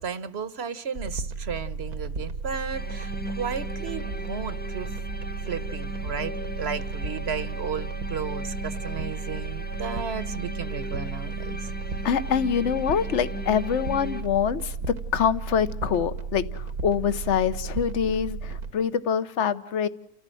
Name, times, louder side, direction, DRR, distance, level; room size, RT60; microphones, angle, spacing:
voice 1, 0.0-4.9 5.5-11.7, right 6 dB, 45° right, 15 dB, 1.3 m, -34 dB
sound 1, 0.9-18.7, right 4 dB, 75° right, 1.9 m, -34 dB
sound 2, 2.7-14.2, left 1 dB, 10° left, 0.5 m, -38 dB
voice 2, 12.0-14.7 15.1-19.9, left 7 dB, 50° left, 13 dB, 1.3 m, -25 dB
29.5 x 14.5 x 7.7 m, 0.71 s
omnidirectional pair, 1.6 m